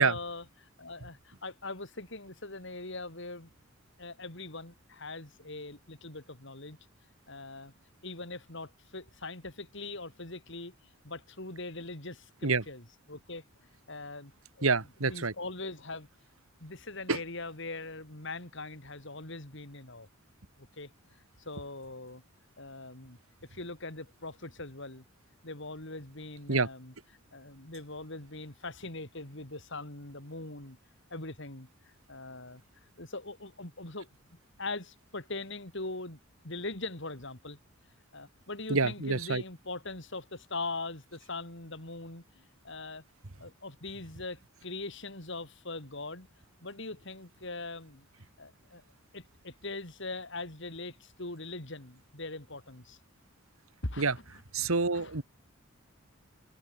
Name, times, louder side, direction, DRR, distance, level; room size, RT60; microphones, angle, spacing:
voice 1, 0.0-3.5 4.0-6.8 7.3-7.7 8.0-10.7 11.0-13.4 13.9-14.3 14.6-16.1 16.6-20.1 20.6-20.9 21.4-22.2 22.6-23.2 23.5-25.0 25.4-26.9 27.3-30.8 31.1-32.6 33.0-34.1 34.6-37.6 38.1-43.0 43.4-46.3 46.6-48.1 48.4-48.8 49.1-53.0 53.8-55.2, left 2 dB, 60° left, 3.8 m, -41 dB
voice 2, 14.6-15.3 17.1-17.2 26.5-26.7 38.7-39.4 54.0-54.1 54.5-55.2, right 4 dB, 80° right, 1.7 m, -27 dB
head